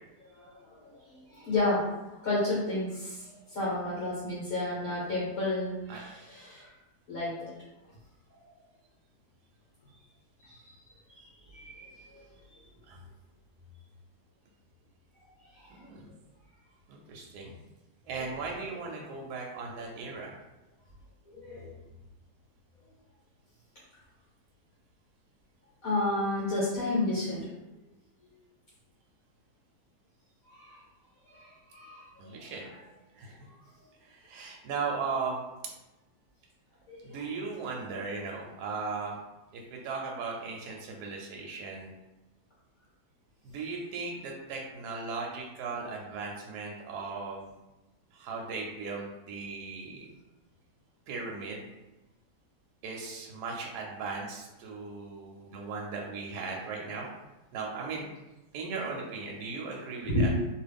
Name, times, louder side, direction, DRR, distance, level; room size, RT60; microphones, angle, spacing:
voice 1, 0.3-6.7 7.1-7.5 8.4-8.5 10.4-10.6 11.1-12.2 12.5-12.6 15.5-15.8 18.2-18.6 21.3-21.7 25.8-27.5 30.5-30.8 31.3-32.5 36.9-37.3 60.1-60.3, left 2 dB, 60° left, -8 dB, 1.4 m, -32 dB
voice 2, 15.8-16.1 16.9-17.5 18.1-20.3 32.2-32.7 33.1-33.4 34.0-35.4 37.0-39.2 39.5-41.9 43.4-47.5 48.1-50.1 51.1-51.6 52.8-57.1 57.5-58.1 58.5-60.3, right 4 dB, 75° right, -1 dB, 1.1 m, -37 dB
3.1 x 2.4 x 3.4 m, 1.0 s
omnidirectional pair, 1.8 m